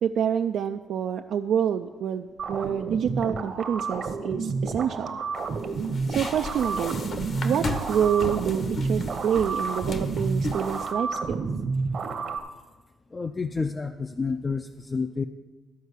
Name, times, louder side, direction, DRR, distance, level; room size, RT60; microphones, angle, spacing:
voice 1, 0.0-5.2 6.1-7.1 7.4-11.4, right 8 dB, 70° right, 5 dB, 0.4 m, -27 dB
sound 1, 2.4-12.4, right 4 dB, 55° right, 0.9 m, -30 dB
sound 2, 5.4-10.9, left 2 dB, 55° left, 1.1 m, -36 dB
voice 2, 13.1-15.2, left 4 dB, 25° left, 7 dB, 0.4 m, -29 dB
12.5 x 4.6 x 8.1 m, 1.3 s
cardioid pair, 90°, 0 cm